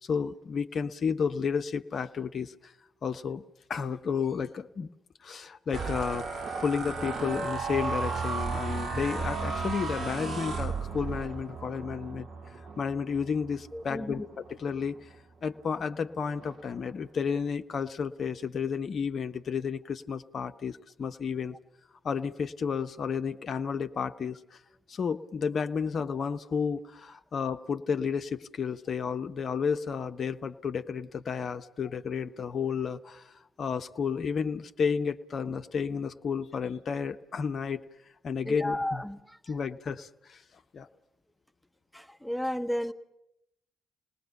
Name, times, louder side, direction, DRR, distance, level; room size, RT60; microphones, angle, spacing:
voice 1, 0.0-2.7 3.0-3.4 3.7-4.9 5.2-6.3 6.6-15.1 15.4-21.6 22.0-24.6 24.9-37.8 38.2-39.0 39.5-40.4 40.7-40.9, left 6 dB, 50° left, 8 dB, 0.8 m, -32 dB
sound 1, 5.7-15.1 15.6-15.9 16.2-16.7, right 4 dB, 50° right, 2.7 m, -34 dB
voice 2, 13.7-14.1 38.5-39.5 41.9-42.9, left 1 dB, ahead, 7 dB, 1.5 m, -33 dB
28.0 x 19.5 x 7.2 m, 0.81 s
figure-of-eight pair, 40°, 0 cm